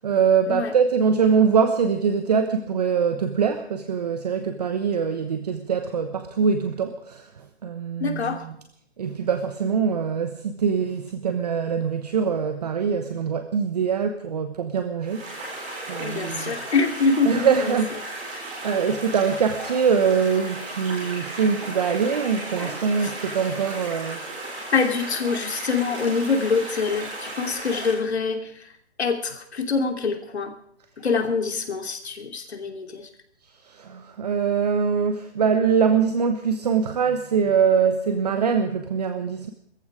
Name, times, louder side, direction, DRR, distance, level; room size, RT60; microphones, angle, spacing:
voice 1, 0.0-8.6 9.0-15.3 15.9-16.5 17.2-17.9 18.6-24.2 33.6-39.5, right 6 dB, 40° right, 8 dB, 1.1 m, -23 dB
voice 2, 8.0-8.4 16.0-17.5 24.7-28.5 29.0-30.5 31.0-33.1, left 4 dB, 70° left, 4 dB, 2.9 m, -25 dB
sound 1, 15.0-27.9, right 2 dB, 15° right, 4.3 m, -35 dB
20.0 x 14.5 x 4.9 m, 0.70 s
hypercardioid pair, 170°, 33 cm